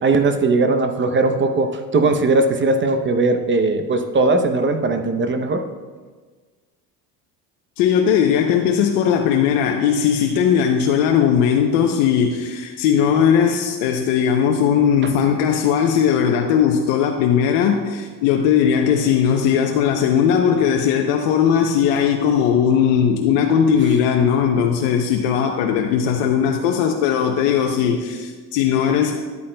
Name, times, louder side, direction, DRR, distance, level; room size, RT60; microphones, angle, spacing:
voice 1, 0.0-5.6, right 3 dB, 30° right, 7 dB, 0.7 m, -19 dB
voice 2, 7.8-29.1, left 8 dB, 90° left, 3 dB, 0.7 m, -18 dB
11.0 x 8.5 x 2.2 m, 1.4 s
supercardioid pair, 95°, 39 cm